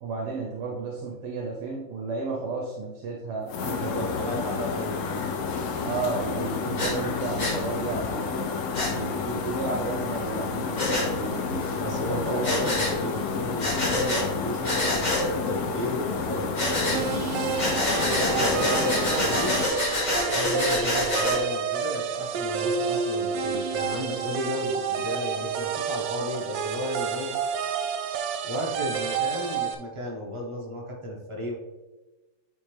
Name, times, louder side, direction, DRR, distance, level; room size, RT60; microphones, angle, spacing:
voice 1, 0.0-3.5 3.8-4.1 4.4-4.7 5.8-8.6 8.9-12.4, right 4 dB, 70° right, 0 dB, 1.5 m, -33 dB
sound 1, 3.5-19.7, left 5 dB, 70° left, 0.7 m, -30 dB
voice 2, 3.6-5.8 11.7-17.2 18.1-19.8 20.3-27.3 28.4-31.5, left 1 dB, 20° right, -3 dB, 1.1 m, -34 dB
Breathing, 6.8-6.9 7.4-7.6 8.7-8.9 10.8-11.1 12.4-12.9 13.6-14.2 14.6-15.2 16.6-17.0 17.6-21.4, left 1 dB, 30° left, 1.1 m, -26 dB
sound 2, 16.9-29.7, right 6 dB, 85° right, 1.3 m, -29 dB
9.1 x 3.6 x 3.4 m, 1.1 s
omnidirectional pair, 2.0 m